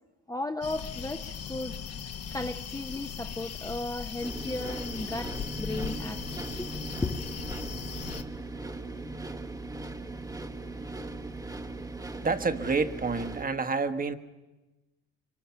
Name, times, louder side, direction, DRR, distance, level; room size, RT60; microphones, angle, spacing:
voice 1, 0.3-1.8 2.3-5.3 5.6-6.2 6.6-6.7 7.0-7.2, left 2 dB, 10° left, 6 dB, 0.8 m, -35 dB
sound 1, 0.6-8.2, left 7 dB, 50° left, 1.4 m, -39 dB
sound 2, 4.2-13.5, right 3 dB, 10° right, 1.2 m, -39 dB
sound 3, 4.6-12.4, equal, 45° right, 1.7 m, -47 dB
voice 2, 12.2-14.2, right 4 dB, 25° right, 10 dB, 1.3 m, -28 dB
25.0 x 23.5 x 5.8 m, 1.1 s
supercardioid pair, 70°, 31 cm